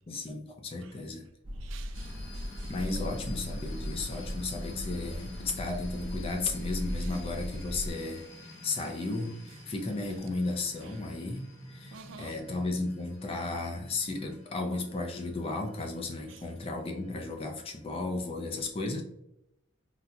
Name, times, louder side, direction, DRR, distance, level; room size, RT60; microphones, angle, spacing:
voice 1, 0.1-1.2 2.7-19.0, left 3 dB, 30° left, 0.4 m, -34 dB
sound 1, 1.4-7.9, equal, 25° right, 0.6 m, -37 dB
voice 2, 1.6-2.7 11.9-12.3 16.3-16.4, right 6 dB, 80° right, 0.4 m, -50 dB
sound 2, 1.9-18.3, left 1 dB, 60° left, 1.0 m, -49 dB
3.9 x 2.1 x 2.7 m
head